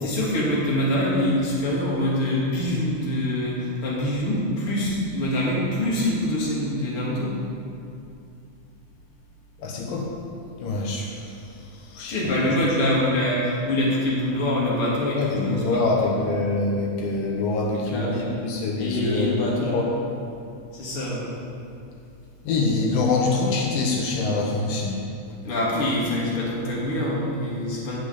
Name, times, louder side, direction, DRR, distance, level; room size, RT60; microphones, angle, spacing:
voice 1, 0.0-7.3 12.1-16.2 17.7-18.2 18.8-19.9 20.7-21.2 25.4-28.0, left 1 dB, 40° left, -5 dB, 3.2 m, -25 dB
voice 2, 9.6-10.1 10.6-11.4 11.7-12.2 15.1-19.9 22.4-25.0, left 3 dB, 85° left, -1 dB, 2.8 m, -25 dB
12.5 x 5.6 x 8.4 m, 2.5 s
omnidirectional pair, 3.8 m